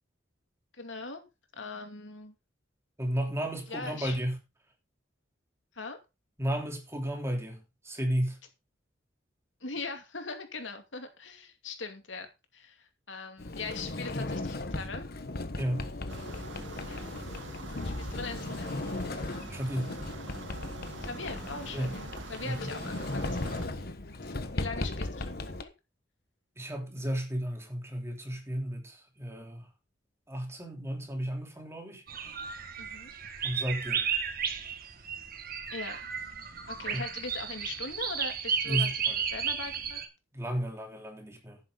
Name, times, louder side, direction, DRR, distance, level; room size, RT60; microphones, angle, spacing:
voice 1, 0.8-2.3 3.7-4.2 5.7-6.0 9.6-15.1 15.8-17.0 18.0-18.7 21.0-23.9 24.3-25.7 32.8-33.1 35.7-36.0 36.7-38.9 39.3-40.0, left 3 dB, 90° left, 2.5 m, -41 dB
voice 2, 3.0-4.4 6.4-8.4 15.6-15.9 19.5-19.9 21.7-21.9 22.4-22.7 26.6-29.7 30.3-32.0 33.4-34.1 36.9-37.0 38.6-39.2 40.3-41.6, equal, 15° right, 3.1 m, -33 dB
Sliding door, 13.4-25.6, left 2 dB, 55° left, 1.2 m, -37 dB
sound 1, 16.1-23.7, right 3 dB, 75° right, 2.4 m, -45 dB
sound 2, 32.1-40.1, right 7 dB, 55° right, 1.9 m, -33 dB
11.0 x 9.9 x 3.9 m
head